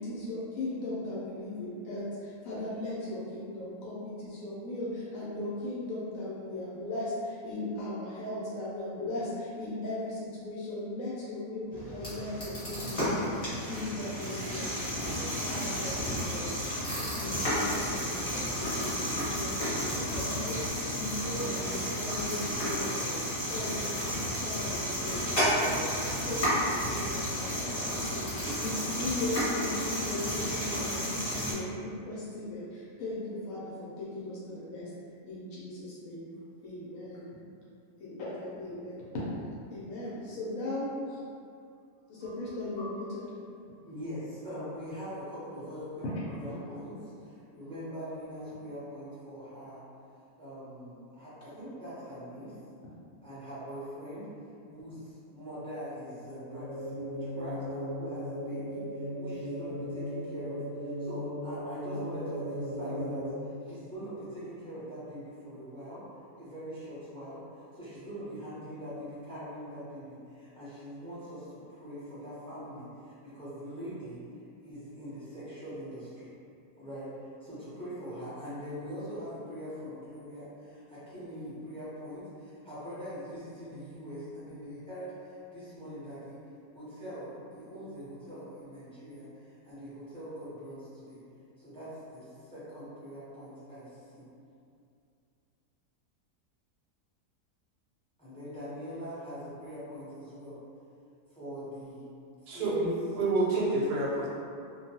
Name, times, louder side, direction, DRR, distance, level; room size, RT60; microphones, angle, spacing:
voice 1, 0.0-34.9 35.3-36.2 36.6-37.3 38.0-39.2 39.7-41.2 42.1-43.2 46.0-46.3, left 1 dB, 70° left, -8 dB, 0.9 m, -38 dB
sound 1, 11.7-31.5, equal, 30° left, 0.8 m, -32 dB
voice 2, 43.8-49.8 50.4-52.6 53.2-54.3 54.7-63.2 63.6-66.0 66.4-74.2 74.6-76.3 76.7-86.4 86.7-91.2 91.6-94.2 98.2-100.6 101.3-102.1 102.4-102.9, equal, 5° left, -13 dB, 0.5 m, -42 dB
sound 2, 56.5-63.3, equal, 55° right, 0.8 m, -37 dB
voice 3, 102.5-102.9 103.2-104.3, right 2 dB, 80° right, -6 dB, 1.2 m, -28 dB
2.5 x 2.2 x 2.7 m, 2.5 s
omnidirectional pair, 1.7 m